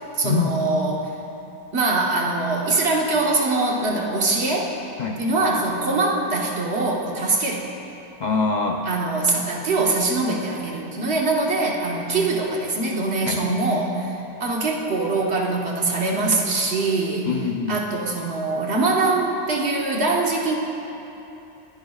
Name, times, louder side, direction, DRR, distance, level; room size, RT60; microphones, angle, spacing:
voice 1, 0.1-1.1 1.7-4.7 5.2-7.7 8.9-17.3 17.7-20.5, right 3 dB, 70° right, -1 dB, 1.5 m, -23 dB
voice 2, 8.2-8.9 13.3-13.5 17.3-17.8, left 5 dB, 50° left, 2 dB, 0.6 m, -24 dB
20.5 x 10.5 x 2.4 m, 3.0 s
omnidirectional pair, 1.1 m